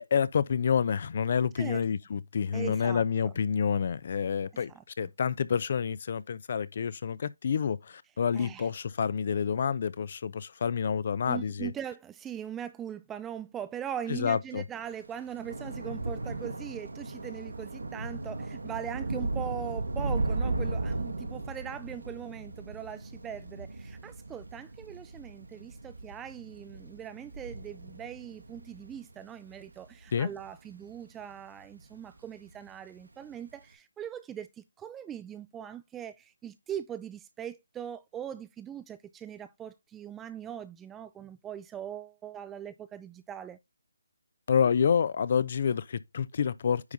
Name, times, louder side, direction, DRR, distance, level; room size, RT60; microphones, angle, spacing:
voice 1, 0.0-11.7 14.1-14.6 30.1-30.3 44.5-46.9, left 7 dB, 45° left, 0.6 m, -28 dB
voice 2, 2.5-3.3 4.7-4.8 8.3-8.7 11.3-43.6, right 9 dB, 10° right, 0.5 m, -41 dB
Thunder / Rain, 14.9-31.4 31.8-32.2 32.5-32.7, right 2 dB, 85° right, 1.9 m, -36 dB
9.7 x 3.6 x 4.0 m
figure-of-eight pair, 155°, 0 cm